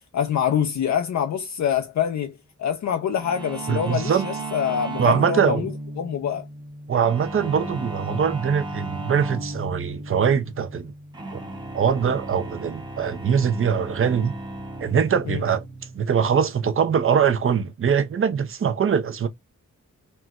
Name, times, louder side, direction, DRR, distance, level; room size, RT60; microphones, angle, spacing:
voice 1, 0.1-6.5 15.3-15.4, left 8 dB, 65° left, 0.5 m, -25 dB
sound 1, 3.2-17.6, right 2 dB, 15° right, 0.8 m, -35 dB
voice 2, 3.7-4.3 5.0-5.6 6.9-10.9 11.3-11.4 11.7-14.3 14.8-15.6 15.9-19.3, right 7 dB, 45° right, 0.6 m, -22 dB
4.2 x 2.2 x 2.3 m
wide cardioid pair, 120°, 30 cm